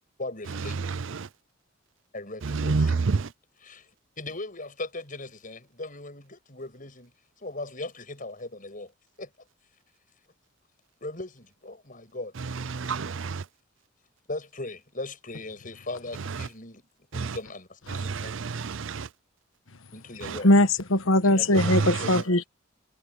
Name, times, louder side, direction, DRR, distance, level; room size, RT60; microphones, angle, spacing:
voice 1, 0.2-0.7 2.1-3.1 3.6-3.9 4.2-7.1 7.4-8.9 9.2-9.3 11.0-12.3 12.8-13.0 14.3-16.8 17.1-18.3 19.9-20.5 21.2-22.2, left 2 dB, 40° left, 7.8 m, -38 dB
voice 2, 2.4-3.3 12.7-13.4 17.1-17.3 17.9-19.1 20.2-20.4 21.6-22.2, right 4 dB, 70° right, 0.6 m, -28 dB
voice 3, 20.4-22.4, left 1 dB, 80° left, 1.4 m, -20 dB
head